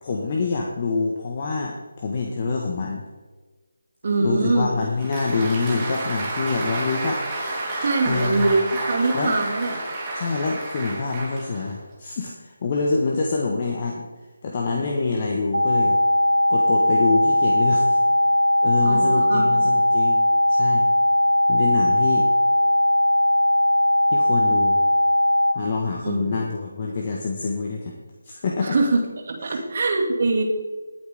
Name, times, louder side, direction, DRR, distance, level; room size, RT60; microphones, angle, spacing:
voice 1, 0.0-3.0 4.2-7.2 8.0-8.5 9.1-9.4 10.1-14.1 14.4-16.0 16.5-18.0 18.6-20.2 20.5-20.9 21.5-22.3 24.1-24.8 25.5-27.9 28.2-28.8 29.5-29.6, left 4 dB, 35° left, 0 dB, 1.5 m, -26 dB
voice 2, 4.0-4.7 7.8-8.6 8.9-9.8 18.8-19.5 26.0-26.3 28.6-30.4, right 3 dB, 45° right, 2 dB, 2.5 m, -23 dB
Applause, 4.8-11.9, right 2 dB, 15° right, 3.6 m, -30 dB
sound 1, 15.5-25.5, left 1 dB, 80° right, 1.3 m, -19 dB
20.5 x 8.4 x 3.7 m, 1.3 s
figure-of-eight pair, 155°, 0 cm